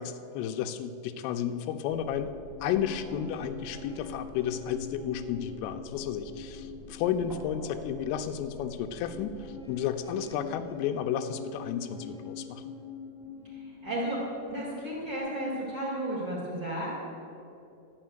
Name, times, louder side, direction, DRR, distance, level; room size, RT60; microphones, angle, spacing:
voice 1, 0.0-2.3 2.6-12.6, left 9 dB, 85° left, 8 dB, 3.2 m, -32 dB
sound 1, 1.9-15.2, left 4 dB, ahead, 1.5 m, -44 dB
voice 2, 13.5-17.0, right 1 dB, 25° right, -6 dB, 3.2 m, -33 dB
12.5 x 6.3 x 8.8 m, 2.7 s
omnidirectional pair, 5.9 m